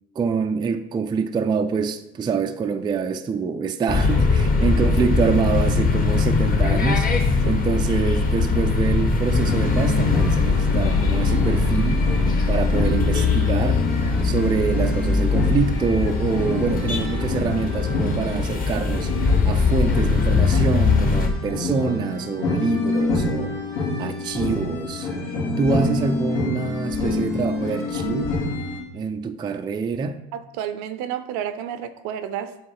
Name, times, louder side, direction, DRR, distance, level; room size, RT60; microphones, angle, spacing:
voice 1, 0.2-7.2 7.4-12.1 12.5-13.9 14.2-23.7 24.0-25.1 25.6-28.4 28.9-30.2, right 5 dB, 15° right, 0.3 m, -25 dB
sound 1, 3.9-21.3, left 4 dB, 30° left, 1.0 m, -21 dB
sound 2, 9.5-28.8, left 2 dB, 80° left, 2.5 m, -28 dB
voice 2, 30.3-32.5, right 9 dB, 65° right, 0.6 m, -30 dB
7.4 x 3.0 x 4.7 m
supercardioid pair, 95°, 31 cm